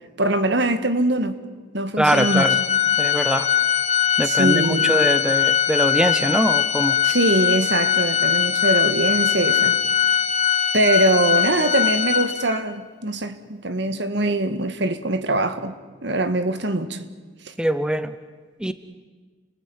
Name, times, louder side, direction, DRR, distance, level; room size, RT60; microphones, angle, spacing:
voice 1, 0.2-1.4 1.7-2.5 4.2-5.0 7.0-9.8 10.7-15.7 16.0-17.1 17.5-17.6, right 2 dB, 60° right, 1.8 m, -22 dB
voice 2, 2.0-2.6 3.0-3.5 4.2-7.0 17.6-18.1 18.6-18.7, right 1 dB, 5° right, 0.8 m, -22 dB
Organ, 2.1-12.7, left 9 dB, 35° left, 1.3 m, -21 dB
29.5 x 20.0 x 9.6 m
head